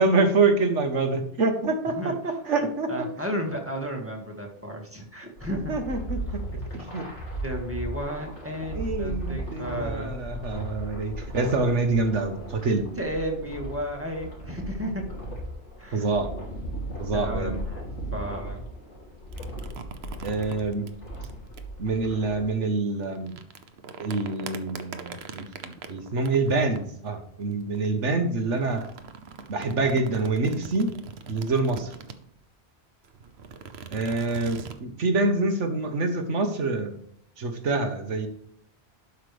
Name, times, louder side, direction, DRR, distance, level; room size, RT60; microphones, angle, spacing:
voice 1, 0.0-2.9 5.5-7.1 8.7-12.9 15.9-16.3 17.0-17.6 20.2-20.9 21.8-23.3 24.0-28.8 29.5-30.9 31.3-31.9 33.9-37.0 37.4-38.3, right 3 dB, 90° right, 6 dB, 1.6 m, -26 dB
voice 2, 2.9-5.7 7.4-10.6 13.0-15.1 15.8-16.1 17.1-17.8 18.1-18.6, equal, 10° right, 0 dB, 1.8 m, -33 dB
sound 1, 5.4-22.5, equal, 80° left, 3.3 m, -37 dB
sound 2, 19.3-21.6 23.0-27.9 28.5-32.4 33.0-34.8, right 5 dB, 65° right, 1.0 m, -41 dB
11.5 x 5.7 x 3.4 m, 0.67 s
omnidirectional pair, 1.2 m